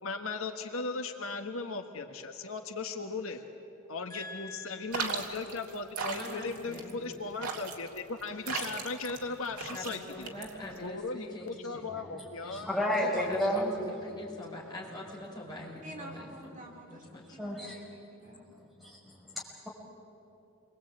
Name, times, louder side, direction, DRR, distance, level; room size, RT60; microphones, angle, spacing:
voice 1, 0.0-3.4 3.9-10.3 10.8-12.7 13.0-13.4, left 3 dB, 65° left, 5 dB, 1.5 m, -37 dB
voice 2, 4.1-5.2 6.0-7.0 9.7-11.9 12.4-12.6 12.9-16.3 16.9-17.4, left 1 dB, 20° left, -3 dB, 5.7 m, -44 dB
sound 1, 4.9-10.9, right 4 dB, 90° right, 2.8 m, -38 dB
voice 3, 12.5-13.7 17.4-17.8 18.3-19.7, equal, ahead, -3 dB, 5.5 m, -32 dB
voice 4, 15.8-18.6, right 1 dB, 35° right, 2 dB, 2.9 m, -49 dB
28.0 x 23.0 x 8.8 m, 2.8 s
head